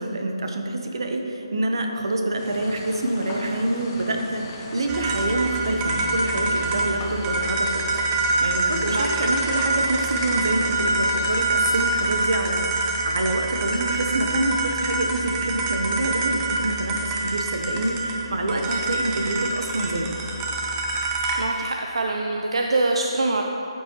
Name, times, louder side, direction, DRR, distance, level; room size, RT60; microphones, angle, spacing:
voice 1, 0.0-8.0 8.4-20.1, right 2 dB, 55° right, 3 dB, 1.0 m, -26 dB
sound 1, 2.4-12.1, left 2 dB, 20° left, 0.8 m, -39 dB
sound 2, 4.9-21.5, right 2 dB, 10° right, 0.5 m, -26 dB
voice 2, 8.9-9.3 21.4-23.4, right 2 dB, 70° right, 2 dB, 0.6 m, -24 dB
11.5 x 8.3 x 3.1 m, 2.9 s
hypercardioid pair, 175°, 3 cm